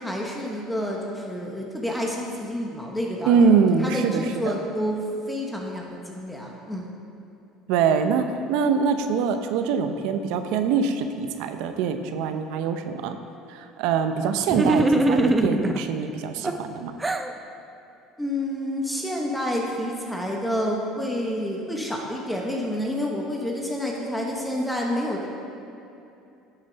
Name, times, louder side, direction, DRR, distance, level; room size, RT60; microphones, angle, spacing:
voice 1, 0.0-3.5 3.8-6.9 18.2-25.3, equal, 5° left, -1 dB, 1.3 m, -29 dB
voice 2, 3.3-4.5 7.7-13.2 13.5-17.0, right 6 dB, 75° right, 8 dB, 0.7 m, -23 dB
sound 1, 14.5-15.8 16.4-17.3, right 2 dB, 15° right, 0.6 m, -21 dB
11.5 x 7.4 x 4.0 m, 2.8 s
supercardioid pair, 90°, 0 cm